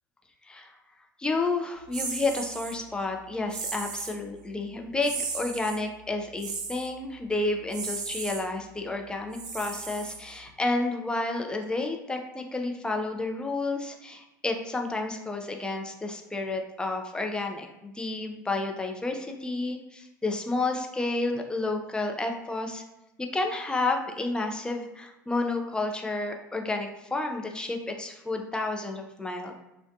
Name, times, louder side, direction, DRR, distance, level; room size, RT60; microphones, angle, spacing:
voice 1, 1.2-22.8 23.3-29.5, left 2 dB, 10° left, 3 dB, 0.4 m, -31 dB
sound 1, 1.9-2.8 3.5-4.2 5.0-5.8 6.4-6.9 7.7-8.4 9.3-10.5, right 4 dB, 40° right, 0.5 m, -35 dB
2.4 x 2.2 x 2.3 m, 0.95 s
figure-of-eight pair, 75°, 10 cm